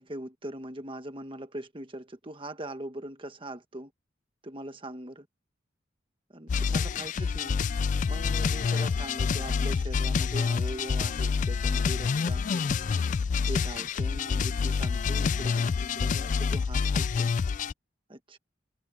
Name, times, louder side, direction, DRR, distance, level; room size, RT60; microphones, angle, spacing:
voice 1, 0.0-3.9 4.4-5.3 6.3-7.6 8.1-12.7 13.4-17.3 18.1-18.4, right 1 dB, 30° right, 1.5 m, -41 dB
sound 1, 6.5-17.7, left 5 dB, 40° left, 0.3 m, -27 dB
head